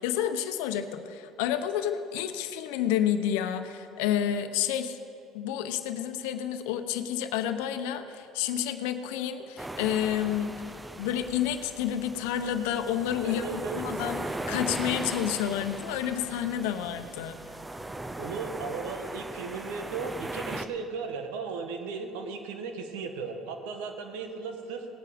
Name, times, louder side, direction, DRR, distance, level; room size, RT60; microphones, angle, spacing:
voice 1, 0.0-5.0 5.3-10.5 11.0-17.4, left 10 dB, 90° left, 8 dB, 0.9 m, -30 dB
sound 1, 9.6-20.6, right 2 dB, 10° right, 0.7 m, -38 dB
voice 2, 13.2-13.8 18.2-24.9, right 5 dB, 90° right, 6 dB, 1.3 m, -36 dB
18.5 x 8.6 x 5.2 m, 2.6 s
supercardioid pair, 100°, 0 cm